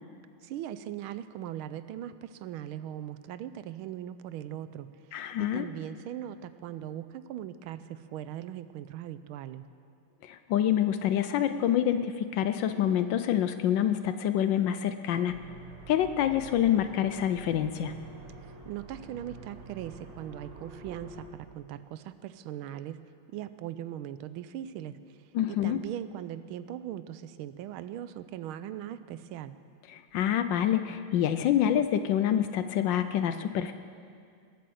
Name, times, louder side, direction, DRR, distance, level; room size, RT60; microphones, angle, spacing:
voice 1, 0.4-9.6 18.4-23.0 23.3-25.0 25.5-29.5, right 11 dB, 85° right, 13 dB, 1.4 m, -40 dB
voice 2, 5.1-5.7 10.3-15.4 15.9-17.9 25.3-25.8 29.9-33.7, left 10 dB, 75° left, 10 dB, 1.2 m, -27 dB
sound 1, 15.3-21.3, right 3 dB, 60° right, 2.4 m, -47 dB
19.5 x 8.6 x 7.8 m, 2.3 s
omnidirectional pair, 2.3 m